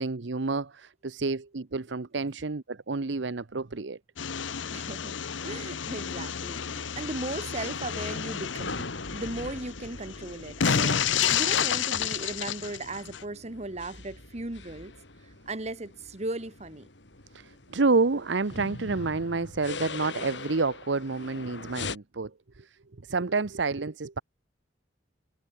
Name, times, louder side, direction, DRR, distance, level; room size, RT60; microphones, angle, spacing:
voice 1, 0.0-4.0 17.3-24.2, right 3 dB, 70° right, 0.9 m, -29 dB
sound 1, 4.2-13.2, left 8 dB, 85° left, 0.9 m, -30 dB
voice 2, 4.7-5.2 5.4-14.9 15.2-16.9, right 2 dB, 35° right, 1.5 m, -37 dB
sound 2, 8.4-22.0, left 3 dB, 70° left, 4.0 m, -43 dB
head